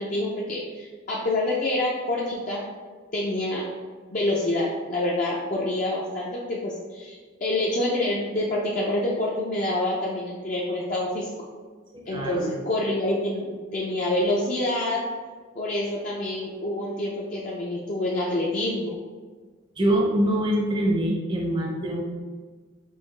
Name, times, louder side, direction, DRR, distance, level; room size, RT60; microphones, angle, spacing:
voice 1, 0.0-2.6 3.1-3.6 4.1-11.3 12.1-15.0 15.6-19.0, left 1 dB, 35° left, -4 dB, 0.4 m, -27 dB
voice 2, 11.9-12.6 19.8-22.0, right 1 dB, 25° right, -2 dB, 0.5 m, -24 dB
4.7 x 3.1 x 3.2 m, 1.5 s
head